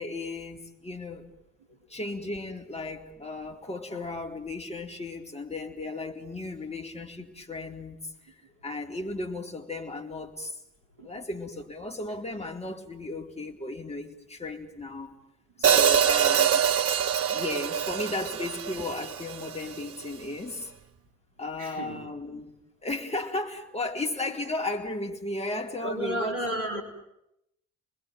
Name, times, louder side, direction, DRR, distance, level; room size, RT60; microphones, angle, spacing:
voice 1, 0.0-1.3 1.9-8.3 8.6-10.6 11.0-15.2 15.6-16.6 17.3-20.7 21.4-22.5 22.8-26.4 26.7-26.8, left 2 dB, 20° left, 4.3 m, -35 dB
voice 2, 15.5-16.1 21.6-22.1 25.8-26.8, equal, 85° right, 4.1 m, -34 dB
Hi-hat, 15.6-19.8, right 8 dB, 40° right, 1.2 m, -24 dB
28.5 x 21.0 x 9.4 m
figure-of-eight pair, 50°, 35 cm